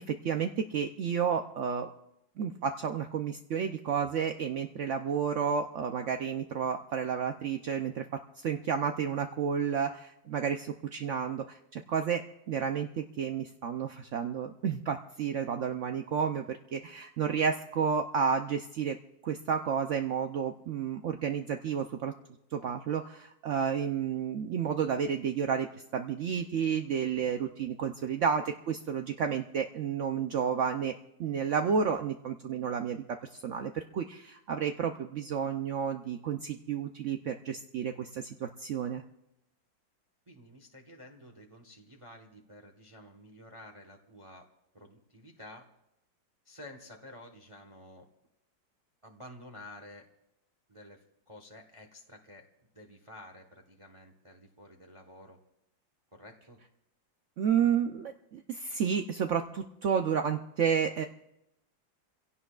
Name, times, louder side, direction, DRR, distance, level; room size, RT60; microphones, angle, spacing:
voice 1, 0.0-1.9 2.4-8.0 8.4-12.2 12.5-19.0 19.2-22.1 22.5-25.7 25.9-30.9 31.2-33.0 33.3-39.0 57.4-61.0, right 7 dB, 70° right, 5 dB, 0.7 m, -31 dB
voice 2, 40.3-44.5 44.7-45.7 46.4-48.1 49.0-50.1 50.7-52.5 52.7-55.4 56.1-56.6, left 1 dB, 20° right, 3 dB, 1.0 m, -51 dB
28.0 x 16.5 x 2.4 m, 0.85 s
omnidirectional pair, 2.0 m